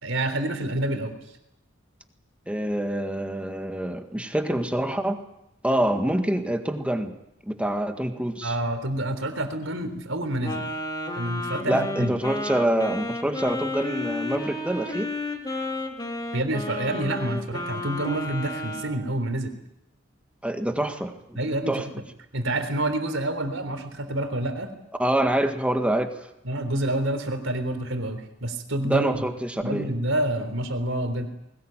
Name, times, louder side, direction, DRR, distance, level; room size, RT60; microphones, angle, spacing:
voice 1, 0.0-1.2 8.4-10.7 11.1-12.2 16.3-19.5 21.4-21.8 22.3-24.7 26.4-29.1 29.6-31.3, right 1 dB, 90° right, 7 dB, 3.6 m, -28 dB
voice 2, 2.5-5.2 5.6-7.2 7.5-8.6 11.7-15.1 20.4-21.4 21.7-21.9 25.0-26.1 28.8-29.9, right 1 dB, 5° right, 6 dB, 1.8 m, -26 dB
Wind instrument woodwind instrument, 10.4-19.0, left 2 dB, 20° left, 3.1 m, -32 dB
21.0 x 19.0 x 9.1 m, 0.82 s
head